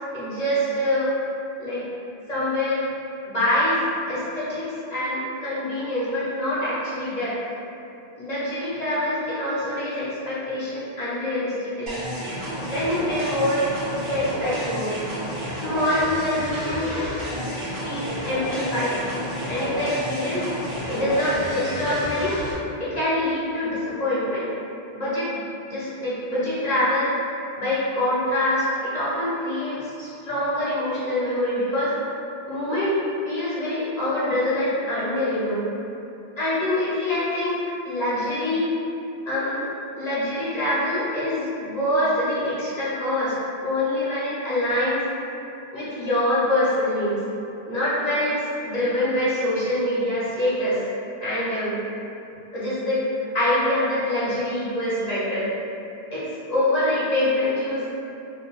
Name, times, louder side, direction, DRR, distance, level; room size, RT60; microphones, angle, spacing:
voice 1, 0.1-1.1 1.6-1.8 2.3-2.8 3.3-3.8 4.1-7.4 8.2-12.0 12.7-13.7 14.0-15.0 15.6-19.0 19.5-20.5 20.9-22.4 22.8-24.5 24.9-25.3 25.7-27.1 27.6-31.9 32.5-35.6 36.4-38.7 39.3-39.7 40.0-43.3 43.6-45.0 45.7-47.2 47.7-50.8 51.2-51.8 52.5-55.5 56.1-56.2 56.5-57.8, left 1 dB, 45° left, -11 dB, 0.7 m, -25 dB
sound 1, 11.9-22.5, equal, 70° right, 1.0 m, -31 dB
2.5 x 2.1 x 2.8 m, 2.8 s
omnidirectional pair, 1.1 m